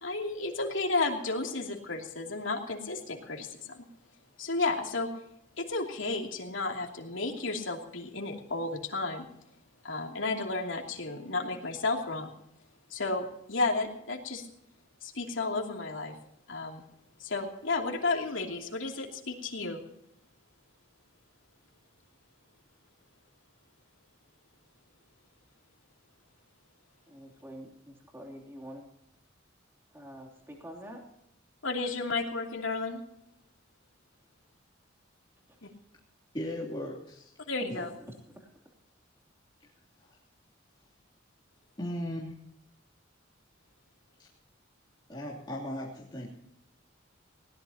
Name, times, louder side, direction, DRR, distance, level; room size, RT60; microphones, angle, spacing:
voice 1, 0.0-3.8 4.4-5.1 5.6-9.3 9.8-12.3 12.9-14.4 15.0-16.1 16.5-16.8 17.2-19.8 31.6-33.0 37.5-37.9, left 3 dB, 80° left, 2 dB, 2.9 m, -32 dB
voice 2, 27.1-28.8 29.9-31.0 35.5-35.6 37.7-37.9 38.4-38.5, equal, 10° right, 0 dB, 3.1 m, -46 dB
voice 3, 36.3-37.3 37.7-37.8 40.0-40.2 41.8-42.4 45.1-46.3, left 1 dB, 25° left, -6 dB, 3.0 m, -37 dB
20.5 x 17.5 x 2.9 m, 0.78 s
head